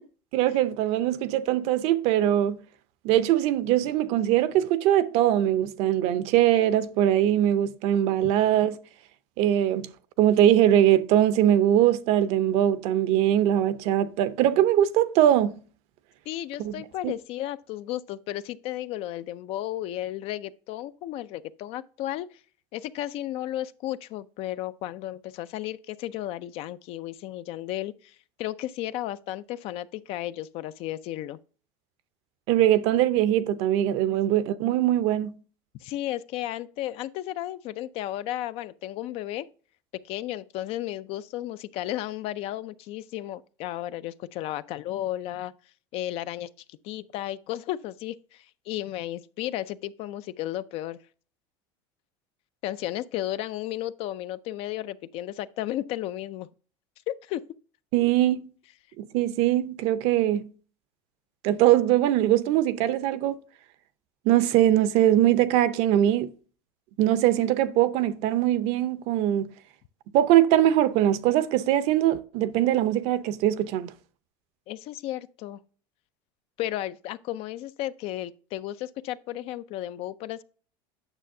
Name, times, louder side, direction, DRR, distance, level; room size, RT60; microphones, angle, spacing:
voice 1, 0.3-2.6 3.0-8.8 9.4-9.9 10.2-15.6 16.6-16.7 17.0-17.1 32.5-35.3 57.9-58.5 59.0-60.5 61.4-63.3 64.2-66.3 67.0-69.5 70.1-73.9, right 12 dB, 60° right, 0.6 m, -22 dB
voice 2, 16.3-22.4 22.7-31.4 34.1-34.2 35.8-39.5 40.0-45.5 45.9-51.0 52.6-56.5 57.1-57.4 74.7-75.6 76.6-80.4, left 13 dB, 55° left, 0.4 m, -34 dB
8.9 x 6.4 x 2.7 m
supercardioid pair, 125°, 12 cm